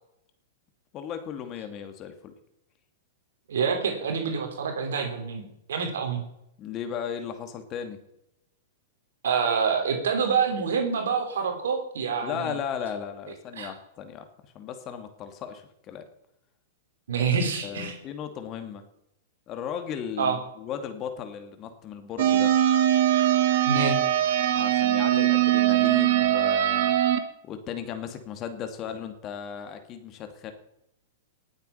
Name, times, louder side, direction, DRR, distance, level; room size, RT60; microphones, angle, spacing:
voice 1, 0.9-2.3 6.6-8.0 12.2-16.0 17.2-17.4 17.6-18.8 19.5-22.5 24.5-27.0 27.5-30.5, left 8 dB, 35° left, 7 dB, 2.4 m, -36 dB
voice 2, 3.5-6.2 9.2-12.5 13.6-13.7 17.1-17.9 20.2-20.4 23.7-24.0, right 5 dB, 80° right, 5 dB, 3.0 m, -26 dB
sound 1, 22.2-27.2, right 12 dB, 65° right, 1.7 m, -21 dB
19.5 x 8.0 x 5.7 m, 0.80 s
hypercardioid pair, 130°, 0 cm